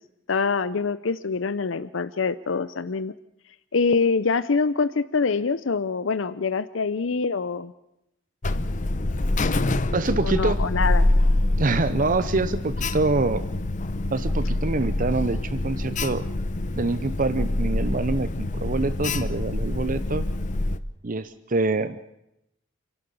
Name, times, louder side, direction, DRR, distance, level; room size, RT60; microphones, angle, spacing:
voice 1, 0.3-3.1 3.7-7.7 10.2-11.1, left 4 dB, 85° left, 14 dB, 0.7 m, -25 dB
Alarm, 8.4-20.8, left 2 dB, 40° left, 0.8 m, -25 dB
voice 2, 9.9-10.6 11.6-13.4 14.1-16.2 16.8-20.3 21.0-22.0, right 3 dB, 45° right, 13 dB, 0.8 m, -25 dB
28.5 x 11.5 x 8.6 m, 0.84 s
head